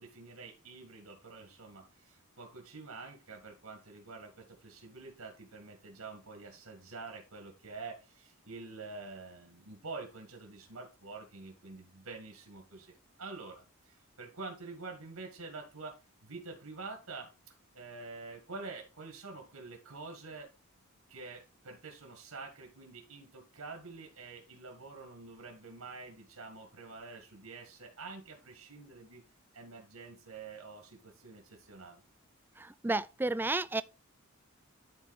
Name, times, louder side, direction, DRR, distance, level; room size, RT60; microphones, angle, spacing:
voice 1, 0.0-20.5 21.1-29.2 29.5-32.0, right 3 dB, 85° right, 1.9 m, -47 dB
voice 2, 32.6-33.8, right 2 dB, 10° right, 0.3 m, -32 dB
11.0 x 4.1 x 4.2 m
head